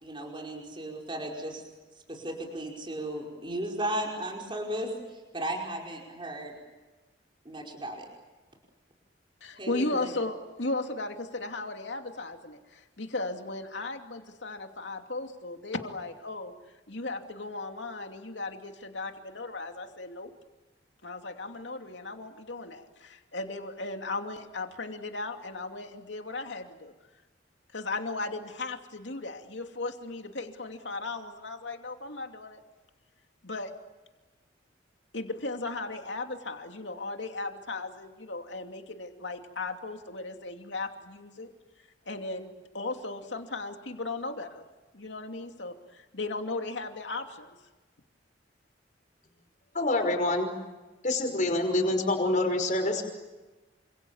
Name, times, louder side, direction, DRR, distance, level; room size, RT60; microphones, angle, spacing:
voice 1, 0.0-1.6 2.1-6.5 7.5-8.1 9.6-10.1, right 1 dB, 25° right, 0 dB, 5.2 m, -35 dB
voice 2, 9.4-16.5 16.9-20.3 21.0-26.9 27.7-32.6 33.4-33.7 35.1-41.5 42.1-44.6 44.9-47.5, left 2 dB, 75° left, 4 dB, 2.8 m, -36 dB
voice 3, 49.7-50.5 51.0-53.0, left 2 dB, 45° left, 4 dB, 5.5 m, -26 dB
28.5 x 26.5 x 7.3 m, 1.2 s
head